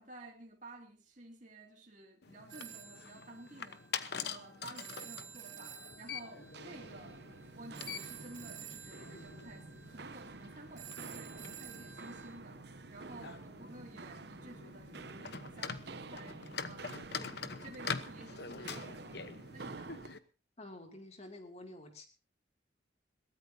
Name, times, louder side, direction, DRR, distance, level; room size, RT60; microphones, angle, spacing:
voice 1, 0.0-7.2 7.5-20.0, right 2 dB, 40° right, 0 dB, 2.5 m, -53 dB
sound 1, 2.2-20.2, left 6 dB, 60° left, 1.0 m, -45 dB
Telephone, 2.5-12.3, right 9 dB, 75° right, 3.3 m, -52 dB
Walk footsteps, 6.4-20.2, right 3 dB, 55° right, 0.8 m, -49 dB
voice 2, 20.6-22.1, left 1 dB, 35° left, 4 dB, 2.7 m, -49 dB
22.5 x 17.0 x 2.8 m, 0.33 s
head